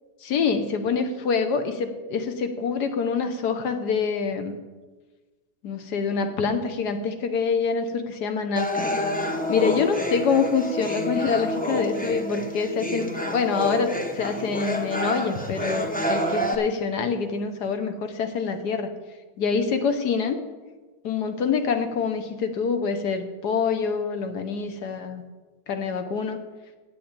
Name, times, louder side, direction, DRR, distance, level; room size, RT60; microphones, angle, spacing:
voice 1, 0.2-4.6 5.6-8.9 9.5-18.9 19.4-20.4 21.0-25.2 25.7-26.4, left 5 dB, 75° left, 7 dB, 1.5 m, -26 dB
sound 1, 8.6-16.5, left 1 dB, 5° left, 0.7 m, -28 dB
8.5 x 7.8 x 8.9 m, 1.3 s
omnidirectional pair, 1.8 m